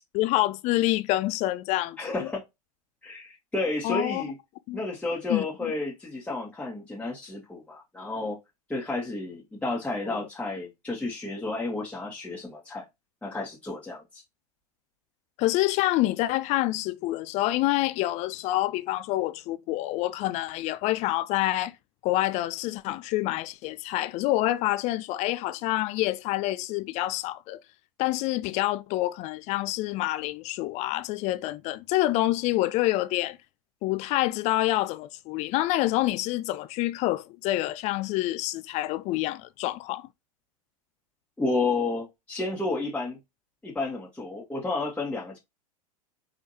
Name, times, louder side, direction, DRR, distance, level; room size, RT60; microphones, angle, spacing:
voice 1, 0.1-2.3 3.8-4.2 4.7-4.8 5.3-5.5 10.1-10.2 15.4-21.7 22.0-27.6 28.0-33.4 33.8-40.1, left 16 dB, 40° left, 0.4 m, -27 dB
voice 2, 2.0-2.4 3.0-4.3 4.7-8.4 8.7-12.8 13.2-14.2 41.4-43.2 43.6-45.4, left 3 dB, 5° left, 1.7 m, -31 dB
4.8 x 3.3 x 2.8 m
hypercardioid pair, 90°, 19 cm